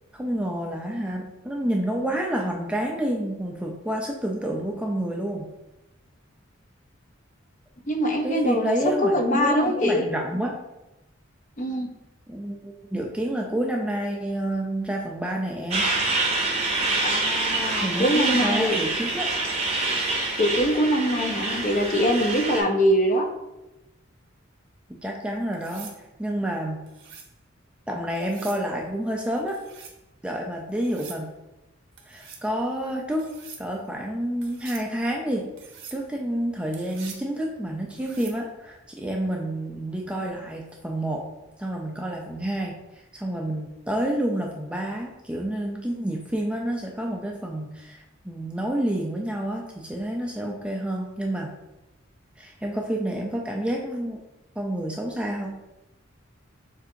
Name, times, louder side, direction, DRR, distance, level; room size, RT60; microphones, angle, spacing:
voice 1, 0.1-5.5 8.2-10.6 12.3-15.9 17.8-19.3 25.0-26.8 27.9-29.6 30.2-31.3 32.1-33.3 33.6-35.5 35.9-41.2 41.6-42.7 43.1-51.5 52.4-54.2 54.6-55.6, right 1 dB, 5° right, 0 dB, 0.3 m, -29 dB
voice 2, 7.9-8.7 9.1-10.0 11.6-11.9 17.0-18.8 20.4-23.3, equal, 40° left, 3 dB, 0.6 m, -23 dB
Truck, 15.7-22.6, right 2 dB, 30° right, 0.7 m, -26 dB
sound 1, 25.5-26.0 26.9-27.3 28.2-28.6 29.5-30.0 30.8-31.2 32.0-32.5 33.2-33.6 34.4-34.9 35.6-36.0 36.7-37.3 37.9-38.4 40.3-40.6, right 6 dB, 65° right, 0.7 m, -44 dB
6.8 x 2.7 x 2.6 m, 0.97 s
head